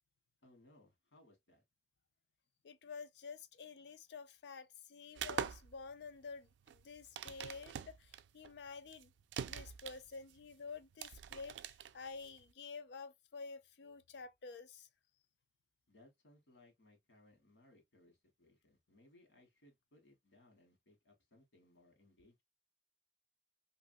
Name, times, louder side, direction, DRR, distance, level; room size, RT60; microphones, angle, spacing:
voice 1, 0.4-1.6 15.9-22.4, left 1 dB, 90° left, 1.3 m, -66 dB
voice 2, 2.6-9.1 9.5-14.9, left 4 dB, 70° left, 0.4 m, -50 dB
sound 1, 5.2-12.5, right 8 dB, 90° right, 0.3 m, -45 dB
2.9 x 2.6 x 2.5 m
head